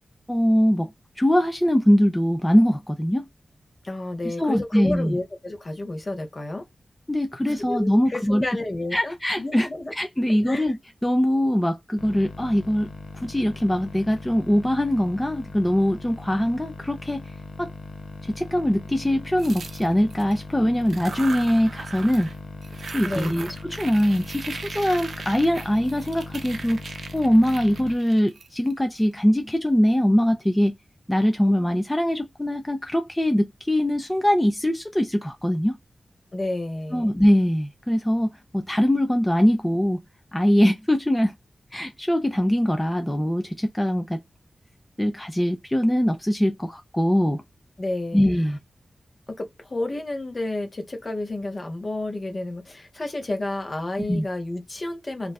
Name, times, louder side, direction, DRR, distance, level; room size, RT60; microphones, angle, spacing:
voice 1, 0.3-0.9 1.2-3.3 4.2-5.2 7.1-8.6 8.9-9.7 10.0-12.9 13.2-17.3 17.6-17.7 18.2-22.3 22.9-26.8 27.1-30.8 31.1-35.8 36.9-40.0 40.3-41.3 41.7-44.2 45.0-47.4 48.1-48.6 54.1-54.3, equal, 10° left, 0.4 m, -22 dB
voice 2, 3.8-6.7 7.4-9.9 10.4-10.7 23.0-23.4 36.3-37.1 47.8-48.2 49.4-55.3, left 2 dB, 35° left, 0.8 m, -31 dB
sound 1, 12.0-27.9, left 3 dB, 85° left, 0.4 m, -39 dB
sound 2, 19.4-20.4 20.8-22.4 22.6-29.0, right 4 dB, 75° right, 0.4 m, -38 dB
2.5 x 2.2 x 2.2 m
wide cardioid pair, 115°, 0 cm